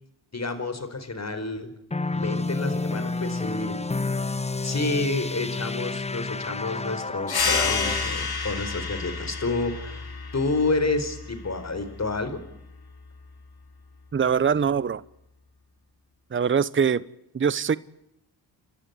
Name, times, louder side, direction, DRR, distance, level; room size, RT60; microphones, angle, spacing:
voice 1, 0.3-1.7 2.1-3.8 4.6-10.1 10.3-12.4, left 3 dB, 35° left, 10 dB, 4.6 m, -29 dB
sound 1, 1.9-8.1, left 3 dB, 15° left, 0.8 m, -30 dB
sound 2, 7.3-12.4, left 4 dB, 50° left, 3.7 m, -30 dB
voice 2, 14.1-15.0 16.3-17.0 17.3-17.8, right 7 dB, 25° right, 20 dB, 0.8 m, -22 dB
29.5 x 12.5 x 9.6 m, 0.83 s
supercardioid pair, 50°, 48 cm